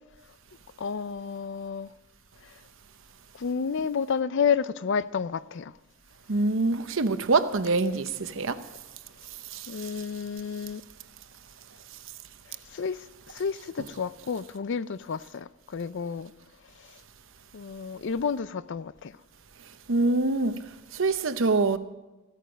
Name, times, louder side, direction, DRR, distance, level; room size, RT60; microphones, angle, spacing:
voice 1, 0.8-1.9 3.3-5.7 9.7-10.8 12.7-16.3 17.5-19.1, left 6 dB, 60° left, 0.5 m, -30 dB
voice 2, 6.3-8.6 9.5-9.9 19.9-20.6 20.9-21.8, right 3 dB, 70° right, 0.9 m, -25 dB
16.0 x 13.5 x 5.2 m
head